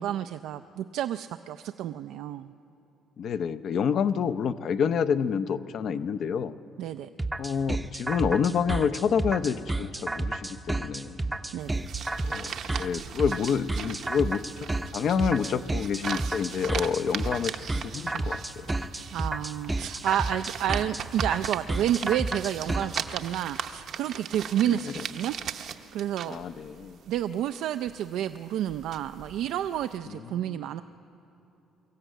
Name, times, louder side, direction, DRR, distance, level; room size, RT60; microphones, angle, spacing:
voice 1, 0.0-2.5 6.8-7.1 11.5-11.9 19.1-25.3 25.6-26.4 27.1-30.8, right 11 dB, 75° right, 10 dB, 0.4 m, -30 dB
voice 2, 3.2-6.5 7.4-11.2 12.3-17.5 17.8-18.7 24.6-25.0 26.3-27.0 30.1-30.6, left 7 dB, 50° left, 12 dB, 0.6 m, -28 dB
sound 1, 7.2-23.0, right 2 dB, 10° right, 0.6 m, -31 dB
sound 2, 11.6-30.0, right 8 dB, 55° right, 0.8 m, -39 dB
23.5 x 14.0 x 9.1 m, 2.9 s
cardioid pair, 140°, 0 cm